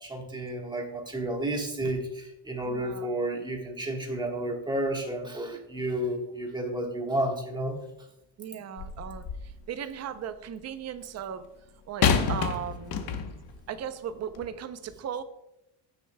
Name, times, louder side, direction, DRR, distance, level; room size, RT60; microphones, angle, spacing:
voice 1, 0.0-7.8, right 1 dB, 10° right, 2 dB, 1.3 m, -31 dB
voice 2, 2.6-3.1 8.4-9.2 9.7-11.5 11.9-13.2 13.7-15.2, right 8 dB, 35° right, 10 dB, 0.6 m, -37 dB
sound 1, 8.8-9.6 12.0-13.5 14.3-14.5, left 6 dB, 50° left, 1.0 m, -28 dB
15.5 x 6.7 x 2.2 m, 0.89 s
cardioid pair, 145°, 48 cm